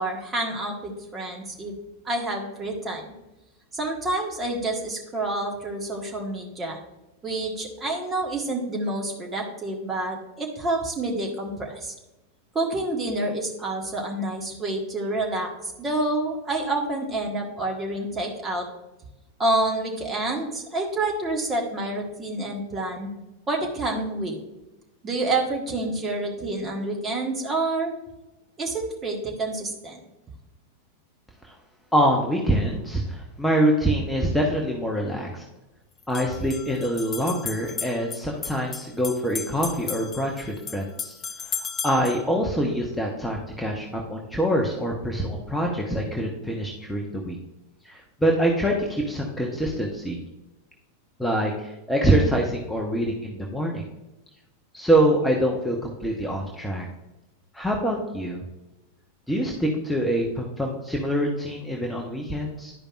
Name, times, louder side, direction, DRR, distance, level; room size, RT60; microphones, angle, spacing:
voice 1, 0.0-1.7 2.0-3.1 3.7-6.8 7.2-11.9 12.5-18.6 19.4-23.1 23.5-24.3 25.0-27.9 28.6-30.0, right 2 dB, 20° right, 0 dB, 1.5 m, -28 dB
voice 2, 31.9-35.4 36.1-41.1 41.4-47.4 47.8-50.2 51.2-53.8 54.7-56.8 57.5-58.4 59.3-62.7, right 1 dB, 5° left, -1 dB, 0.9 m, -25 dB
sound 1, 34.3-34.4 36.0-42.2, left 6 dB, 25° left, 0.6 m, -35 dB
11.5 x 5.1 x 2.5 m, 0.99 s
figure-of-eight pair, 90°, 0 cm